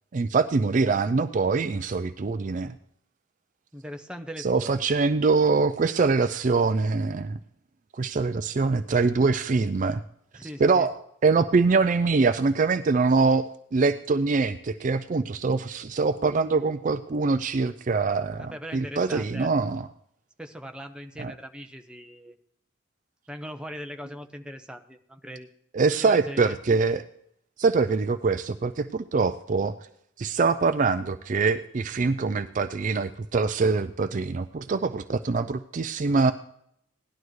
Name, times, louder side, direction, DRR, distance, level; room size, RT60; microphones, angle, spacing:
voice 1, 0.1-2.7 4.4-7.4 7.9-10.0 10.6-13.5 13.7-19.9 21.2-21.3 25.7-27.0 27.6-29.7 30.2-36.3, right 4 dB, 35° right, 11 dB, 0.4 m, -24 dB
voice 2, 3.7-4.8 10.3-10.9 18.3-19.5 20.4-22.4 23.3-25.5 26.0-26.6, equal, 5° right, 5 dB, 0.7 m, -40 dB
17.5 x 11.5 x 3.1 m, 0.74 s
head